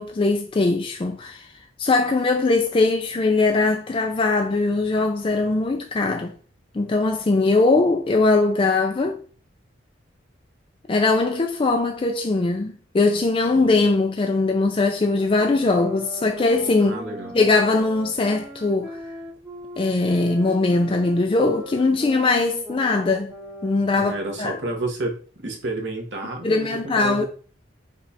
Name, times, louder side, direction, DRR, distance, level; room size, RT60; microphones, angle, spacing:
voice 1, 0.0-1.5 1.8-6.3 6.7-9.2 10.9-17.0 17.3-19.0 19.8-23.3 23.6-24.1 24.4-24.6 26.4-27.3, left 3 dB, 30° left, 0.4 m, -21 dB
voice 2, 13.5-13.9 16.8-17.3 23.8-27.3, right 2 dB, 65° right, 1.1 m, -30 dB
sound 1, 15.1-25.1, equal, 15° right, 0.8 m, -40 dB
5.0 x 2.4 x 4.1 m
head